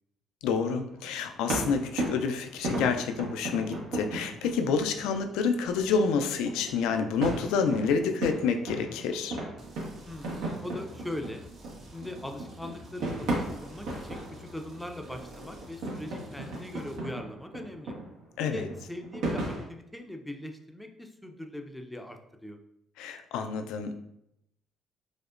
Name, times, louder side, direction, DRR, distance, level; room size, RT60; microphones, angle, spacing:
voice 1, 0.4-9.4 18.4-18.7 23.0-24.0, left 5 dB, 85° left, 7 dB, 0.3 m, -28 dB
sound 1, 0.9-19.6, right 2 dB, 85° right, 1.0 m, -36 dB
sound 2, 9.6-17.0, left 1 dB, 60° right, 0.9 m, -51 dB
voice 2, 10.0-11.4 11.9-17.9 18.4-22.6, left 1 dB, 5° left, 4 dB, 0.5 m, -40 dB
4.9 x 2.1 x 2.4 m, 0.78 s
supercardioid pair, 75°, 0 cm